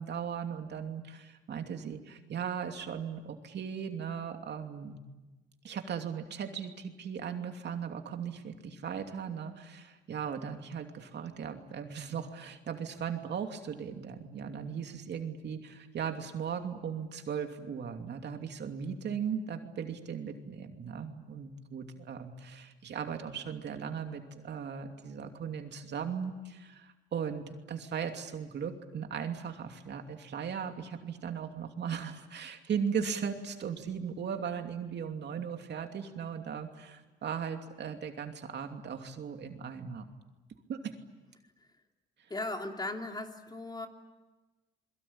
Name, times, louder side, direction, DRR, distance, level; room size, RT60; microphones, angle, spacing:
voice 1, 0.0-5.0 5.6-40.1 40.7-40.9, right 7 dB, 60° right, 5 dB, 2.8 m, -38 dB
voice 2, 42.3-43.9, left 2 dB, 20° left, 3 dB, 3.2 m, -37 dB
28.5 x 22.5 x 8.8 m, 1.1 s
cardioid pair, 90°, 20 cm